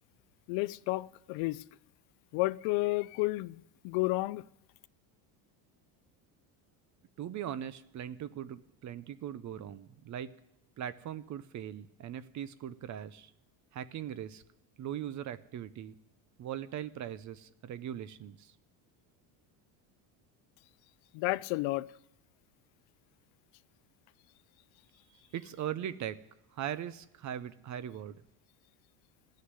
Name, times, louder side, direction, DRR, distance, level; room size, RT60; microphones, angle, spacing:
voice 1, 0.5-1.6 2.3-4.4 21.1-21.9, left 21 dB, 70° left, 0.5 m, -31 dB
voice 2, 7.2-10.3 10.8-13.3 13.7-14.4 14.8-15.9 16.4-18.6 25.1-26.2 26.5-28.2, right 10 dB, 35° right, 0.6 m, -40 dB
15.5 x 6.6 x 9.6 m
cardioid pair, 135°, 49 cm